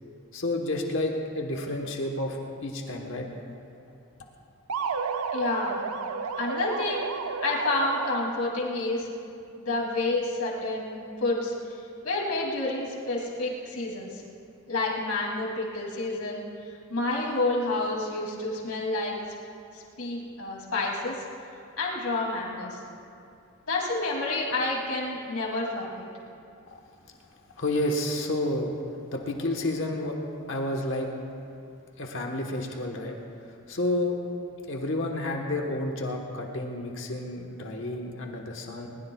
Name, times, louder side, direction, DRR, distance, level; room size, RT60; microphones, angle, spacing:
voice 1, 0.3-3.3 27.6-28.7 29.1-30.2 30.5-31.1 32.0-33.2 33.7-34.2 34.7-38.9, left 1 dB, 55° left, 1 dB, 1.3 m, -30 dB
sound 1, 4.7-8.6, right 5 dB, 85° right, 0.6 m, -32 dB
voice 2, 5.3-5.8 6.4-9.1 9.6-14.2 14.7-19.1 19.7-21.2 21.8-22.8 23.7-26.1, left 2 dB, 80° left, -3 dB, 2.8 m, -29 dB
21.5 x 20.5 x 2.4 m, 2.5 s
head